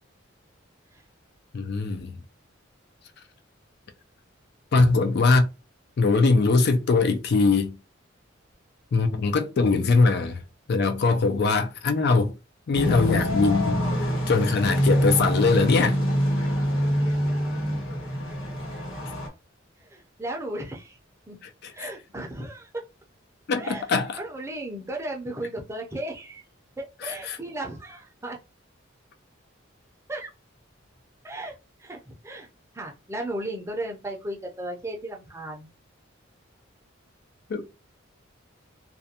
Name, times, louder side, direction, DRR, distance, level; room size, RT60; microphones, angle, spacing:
voice 1, 1.5-2.2 4.7-5.5 6.0-7.8 8.9-10.4 10.7-12.3 12.7-16.0 21.4-21.9 23.5-24.2 27.0-27.4 37.5-37.6, left 3 dB, 55° left, 0.4 m, -22 dB
sound 1, 12.7-19.3, equal, 75° left, 1.2 m, -25 dB
voice 2, 19.8-21.0 21.3-21.4 21.7-22.7 23.6-23.9 24.2-26.4 26.8-28.4 30.1-30.3 31.2-31.5 31.8-32.5 32.7-35.7, right 1 dB, 15° right, 0.5 m, -35 dB
2.4 x 2.1 x 2.7 m
head